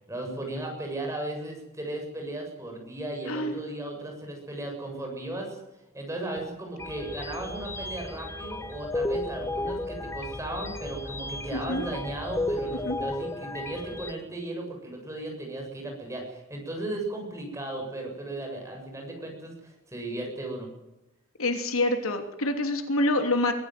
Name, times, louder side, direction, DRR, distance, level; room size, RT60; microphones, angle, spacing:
voice 1, 0.1-5.6 5.9-20.7, right 2 dB, 15° right, 1 dB, 7.3 m, -36 dB
voice 2, 3.3-3.6 11.5-11.8 12.7-13.0 21.4-23.5, left 2 dB, 85° left, 5 dB, 3.2 m, -27 dB
sound 1, 6.8-14.1, left 2 dB, 15° left, 1.3 m, -34 dB
23.5 x 15.0 x 9.4 m, 0.97 s
head